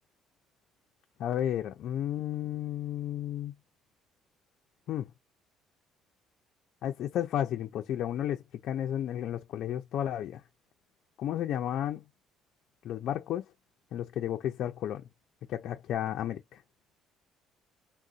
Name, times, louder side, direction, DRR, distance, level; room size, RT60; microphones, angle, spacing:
voice 1, 1.2-3.5 4.9-5.1 6.8-10.4 11.2-12.0 12.8-13.4 13.9-15.0 15.5-16.6, left 11 dB, 60° left, 0.4 m, -32 dB
3.8 x 2.1 x 2.4 m
cardioid pair, 150°, 0 cm